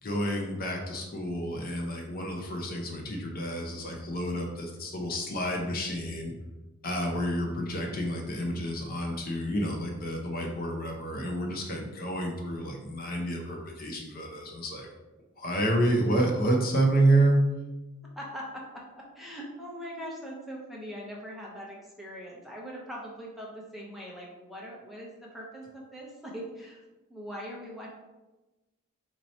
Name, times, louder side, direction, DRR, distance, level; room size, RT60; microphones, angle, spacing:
voice 1, 0.0-6.3 6.8-14.9 15.4-17.6, right 1 dB, 40° left, 1 dB, 0.6 m, -29 dB
voice 2, 18.2-26.8 27.1-27.9, equal, ahead, -4 dB, 0.7 m, -41 dB
4.4 x 2.8 x 4.2 m, 1.1 s
head